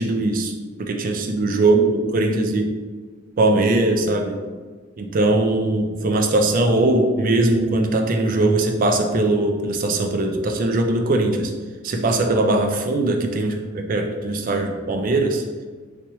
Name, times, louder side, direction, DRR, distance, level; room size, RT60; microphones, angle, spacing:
voice 1, 0.0-2.7 3.4-4.4 5.0-11.5 11.8-15.4, right 2 dB, 45° right, 4 dB, 0.4 m, -20 dB
3.3 x 2.8 x 2.9 m, 1.5 s
head